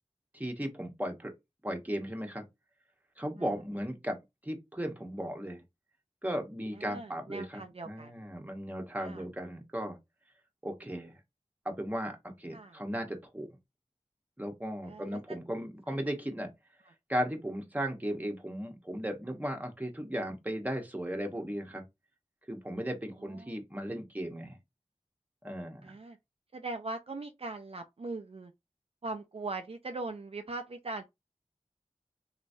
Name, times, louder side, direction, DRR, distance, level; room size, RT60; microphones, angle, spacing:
voice 1, 0.3-1.3 1.6-2.4 3.2-5.6 6.2-10.0 10.6-11.1 11.6-13.5 14.4-16.5 17.1-21.8 22.5-24.6 25.4-25.9, equal, 15° right, 1.0 m, -36 dB
voice 2, 6.7-8.3 9.0-9.2 12.5-12.8 14.8-15.2 15.9-16.0 23.2-23.6 25.8-26.2 26.5-28.5 29.0-31.0, right 3 dB, 55° right, 0.4 m, -40 dB
3.1 x 3.0 x 2.6 m
wide cardioid pair, 40°, 12 cm